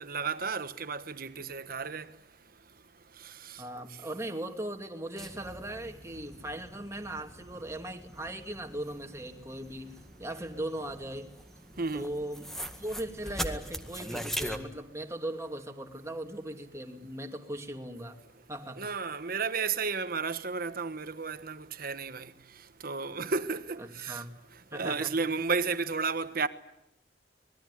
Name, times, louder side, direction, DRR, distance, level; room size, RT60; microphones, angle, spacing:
voice 1, 0.0-2.1 3.2-3.6 11.8-12.1 18.8-22.3 22.8-24.2 24.7-26.5, right 4 dB, 55° right, 1.3 m, -33 dB
voice 2, 3.6-9.9 10.2-11.3 11.9-12.5 12.8-18.2 18.5-18.8 23.8-24.3 24.7-25.1, right 1 dB, 15° right, 2.7 m, -38 dB
sound 1, 5.2-14.6, equal, ahead, 1.9 m, -41 dB
25.5 x 21.0 x 10.0 m
head